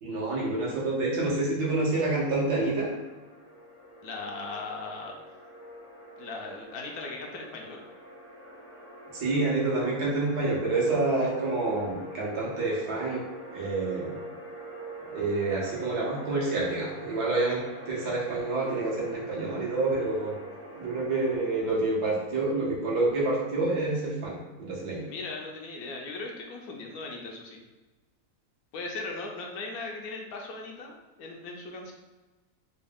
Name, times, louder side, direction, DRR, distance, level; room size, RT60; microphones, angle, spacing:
voice 1, 0.0-2.9 9.1-13.2 13.5-14.2 15.1-20.3 20.7-24.3 24.6-25.1, right 2 dB, 75° right, -5 dB, 1.6 m, -28 dB
sound 1, 1.6-21.6, right 1 dB, 15° left, 0.5 m, -45 dB
voice 2, 4.0-5.2 6.2-7.8 25.1-27.6 28.7-31.9, left 3 dB, 70° left, 0 dB, 1.0 m, -38 dB
3.9 x 2.3 x 3.5 m, 1.2 s
omnidirectional pair, 1.7 m